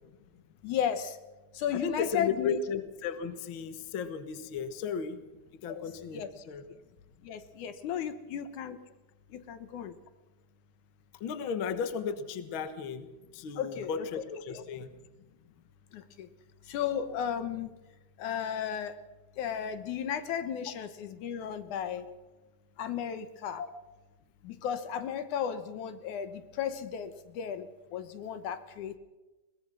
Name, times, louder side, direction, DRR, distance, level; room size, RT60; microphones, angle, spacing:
voice 1, 0.6-1.2 1.5-2.6 5.7-5.8 6.1-6.3 6.7-6.8 7.2-8.8 9.3-10.0 13.6-14.1 15.9-16.3 16.6-17.7 18.2-19.0 19.4-22.1 22.8-23.6 24.4-29.0, left 8 dB, 65° left, 11 dB, 2.1 m, -34 dB
voice 2, 1.7-5.2 5.5-6.6 11.2-14.9 23.6-23.7, left 6 dB, 85° left, 11 dB, 1.1 m, -35 dB
22.0 x 19.5 x 6.2 m, 1.1 s
omnidirectional pair, 4.5 m